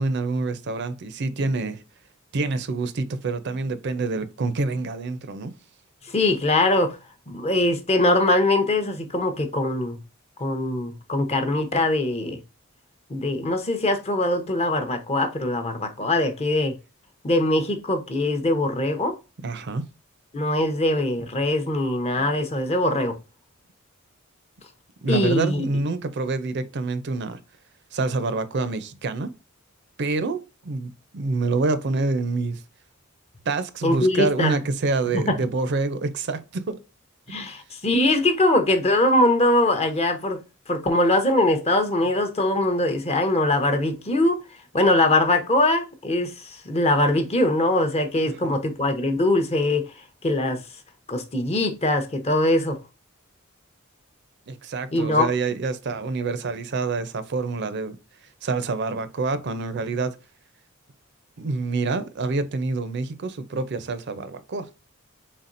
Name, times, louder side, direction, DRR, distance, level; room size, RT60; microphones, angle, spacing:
voice 1, 0.0-1.8 2.3-5.5 19.4-19.8 25.0-27.4 27.9-29.3 30.0-32.6 33.5-36.8 48.4-48.5 54.5-58.0 58.4-60.1 61.4-64.7, right 3 dB, 55° right, 0.5 m, -27 dB
voice 2, 6.1-7.0 7.3-10.0 10.4-12.4 13.1-16.7 17.2-19.1 20.3-23.2 25.1-25.6 33.8-34.6 35.1-35.4 37.3-40.4 40.7-44.4 44.7-49.8 50.2-50.6 51.1-52.8 54.9-55.3, left 1 dB, 30° left, 0.7 m, -22 dB
4.1 x 3.6 x 2.5 m
head